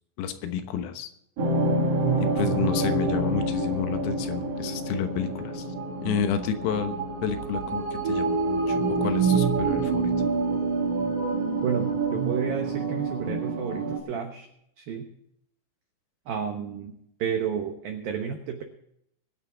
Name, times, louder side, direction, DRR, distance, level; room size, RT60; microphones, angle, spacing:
voice 1, 0.2-1.1 2.2-5.7 6.0-7.0 7.2-10.1, left 8 dB, 85° left, 7 dB, 3.9 m, -30 dB
sound 1, 1.4-14.0, right 3 dB, 40° right, 2.7 m, -27 dB
voice 2, 11.6-14.5 14.8-15.1 16.3-16.9 17.2-18.6, right 7 dB, 85° right, 4 dB, 2.0 m, -31 dB
22.5 x 9.3 x 3.9 m, 0.74 s
omnidirectional pair, 5.9 m